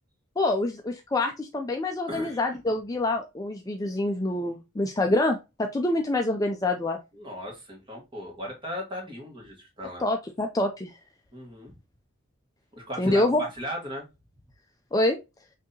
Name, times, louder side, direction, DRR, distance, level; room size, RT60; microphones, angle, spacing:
voice 1, 0.4-7.0 10.0-10.9 13.0-13.4 14.9-15.2, left 2 dB, 15° left, 4 dB, 0.3 m, -26 dB
voice 2, 2.1-2.4 7.1-10.0 11.3-11.7 12.7-14.0, equal, 25° right, 0 dB, 1.5 m, -36 dB
5.9 x 2.7 x 2.8 m, 0.25 s
head